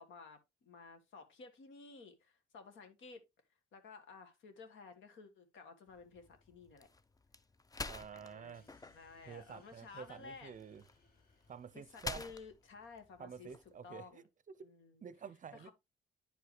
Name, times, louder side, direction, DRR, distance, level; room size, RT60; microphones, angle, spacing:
voice 1, 0.0-3.2 3.7-6.9 8.1-10.5 11.7-13.5 13.8-14.2 14.6-15.1 15.5-15.7, left 4 dB, 75° left, 1.7 m, -54 dB
sound 1, 5.9-14.1, left 3 dB, 20° left, 0.6 m, -49 dB
voice 2, 7.9-8.6 9.2-10.8 11.5-12.2 13.2-14.2 14.6-14.7 15.0-15.7, right 7 dB, 40° right, 0.6 m, -49 dB
sound 2, 8.5-12.9, left 3 dB, 50° left, 1.8 m, -72 dB
10.0 x 4.8 x 3.2 m
cardioid pair, 90°, 20 cm